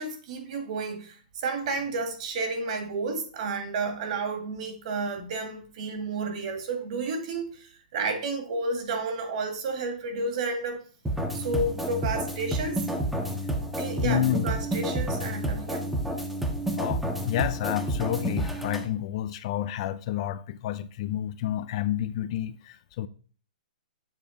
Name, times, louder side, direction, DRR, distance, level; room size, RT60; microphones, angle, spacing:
voice 1, 0.0-10.8 11.3-12.9 13.8-15.8, right 3 dB, 55° right, 1.8 m, -31 dB
sound 1, 11.1-18.9, right 1 dB, 5° right, 0.7 m, -30 dB
voice 2, 14.0-14.5 16.2-16.3 16.8-23.1, left 12 dB, 45° left, 0.4 m, -29 dB
7.3 x 3.3 x 5.0 m
hypercardioid pair, 150°, 5 cm